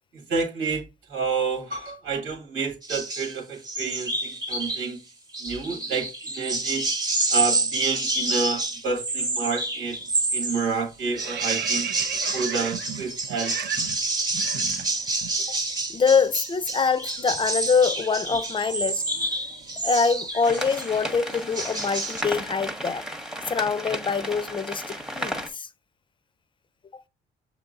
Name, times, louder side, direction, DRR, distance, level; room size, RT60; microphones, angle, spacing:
voice 1, 0.1-5.0 5.4-6.9 7.3-10.0 10.3-11.9 12.3-13.6, right 4 dB, 90° right, 1.8 m, -29 dB
sound 1, 2.8-3.3 3.6-4.9 5.3-10.7 11.2-21.0 21.3-22.2, right 2 dB, 20° right, 1.0 m, -28 dB
sound 2, 9.8-10.1 10.4-15.4 15.6-15.8 16.1-20.2, right 9 dB, 60° right, 0.5 m, -36 dB
voice 2, 15.9-19.0 19.8-23.0 23.5-25.7 26.9-27.0, left 5 dB, 25° left, 0.4 m, -24 dB
sound 3, 20.4-25.5, equal, 5° right, 0.7 m, -34 dB
6.6 x 3.0 x 2.5 m
cardioid pair, 90°, 20 cm